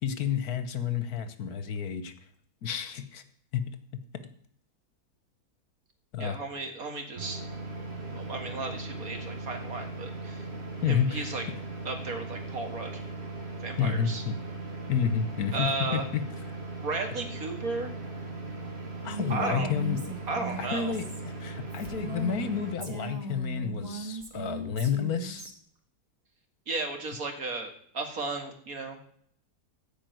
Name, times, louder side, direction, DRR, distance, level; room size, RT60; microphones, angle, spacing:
voice 1, 0.0-2.1 2.6-3.2 3.5-3.8 6.1-6.4 10.8-11.3 13.8-14.4 14.9-16.2 19.0-20.0 20.6-21.1 21.4-25.5, left 7 dB, 70° left, 10 dB, 1.6 m, -30 dB
voice 2, 6.2-7.4 8.0-10.4 10.9-11.5 11.9-13.0 13.6-14.2 15.5-16.1 16.8-17.9 19.3-19.7 20.3-20.9 26.7-29.2, right 3 dB, 60° right, 5 dB, 2.3 m, -34 dB
sound 1, 7.2-22.7, right 3 dB, 40° right, 2.5 m, -38 dB
Female speech woman speaking, 19.0-22.5 22.8-25.5, right 2 dB, 25° right, 1.6 m, -39 dB
15.0 x 5.3 x 9.2 m, 0.63 s
omnidirectional pair, 1.7 m